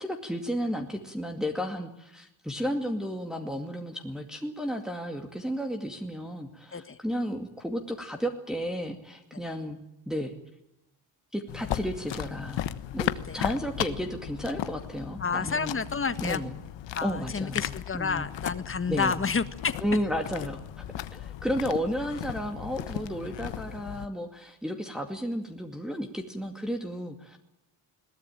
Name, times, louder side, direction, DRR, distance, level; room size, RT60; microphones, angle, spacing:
voice 1, 0.0-9.8 10.1-10.3 11.3-12.7 12.9-15.8 16.2-16.5 17.0-18.3 18.9-19.1 19.8-20.8 21.1-27.4, equal, ahead, 2 dB, 2.3 m, -33 dB
sound 1, 11.5-24.1, left 12 dB, 80° left, 1.3 m, -36 dB
voice 2, 15.2-16.4 16.9-19.7, left 5 dB, 30° left, 11 dB, 1.6 m, -30 dB
22.0 x 17.5 x 9.1 m, 0.86 s
cardioid pair, 110°, 44 cm